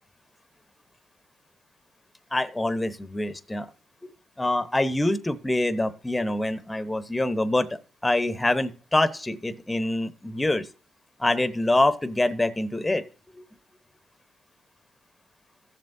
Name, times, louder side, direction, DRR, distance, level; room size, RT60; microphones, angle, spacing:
voice 1, 2.3-3.7 4.0-10.7 11.2-13.0 13.3-13.4, left 1 dB, 10° left, 13 dB, 0.9 m, -25 dB
14.5 x 7.5 x 2.7 m, 0.37 s
cardioid pair, 90°, 0 cm